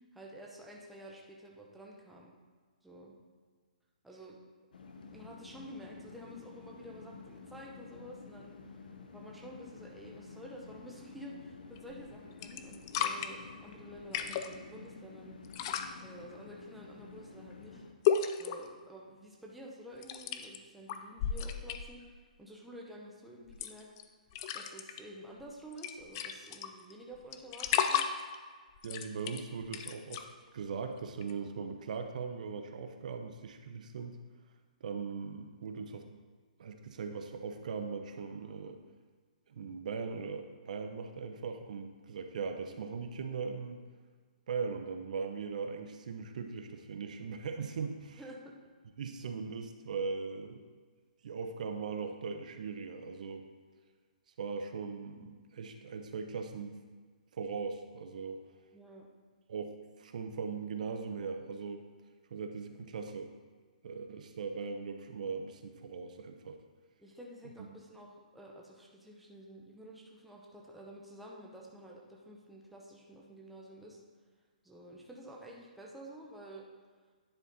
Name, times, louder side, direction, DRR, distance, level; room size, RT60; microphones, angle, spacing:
voice 1, 0.1-2.3 2.8-3.1 4.0-4.4 5.1-8.6 9.1-15.4 16.0-17.8 18.4-22.0 22.4-23.9 24.5-28.0 48.2-48.5 58.7-59.1 67.0-74.0 74.6-76.7, right 1 dB, ahead, -3 dB, 0.7 m, -50 dB
sound 1, 4.7-17.9, left 4 dB, 75° left, 0.9 m, -51 dB
sound 2, 11.8-12.1 12.4-13.3 14.0-14.5 15.4-15.9 18.1-18.7 20.0-20.6 20.9-22.0 23.5-24.0 24.3-25.0 25.4-25.5 25.7-26.9 27.3-28.4 28.8-30.2 31.2-31.3, left 8 dB, 30° left, 0.4 m, -33 dB
voice 2, 28.8-30.3 30.5-34.2 34.8-36.1 36.6-38.8 39.5-43.8 44.5-48.2 49.0-50.6 51.2-53.5 54.4-56.8 57.3-58.4 59.5-61.8 62.3-63.3 63.8-66.6, right 5 dB, 60° right, 6 dB, 0.6 m, -39 dB
10.0 x 4.1 x 4.0 m, 1.5 s
hypercardioid pair, 160°, 5 cm